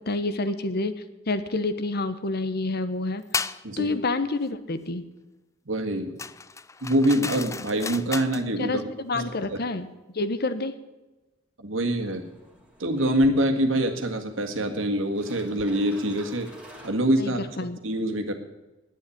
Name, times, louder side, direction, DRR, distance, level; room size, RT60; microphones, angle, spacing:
voice 1, 0.1-3.2 3.8-5.0 8.6-9.9 10.1-10.7 17.2-17.8, left 2 dB, 55° left, 12 dB, 1.0 m, -28 dB
sound 1, 3.3-3.6 6.2-8.5, left 4 dB, 15° left, 0.4 m, -33 dB
voice 2, 3.6-4.0 5.7-6.2 6.8-9.2 9.5-9.6 11.6-12.3 12.8-16.5 16.8-17.4 17.8-18.3, right 1 dB, 80° right, 5 dB, 1.8 m, -25 dB
sound 2, 11.8-17.6, equal, 5° right, 2.3 m, -50 dB
10.0 x 9.5 x 9.9 m, 1.1 s
head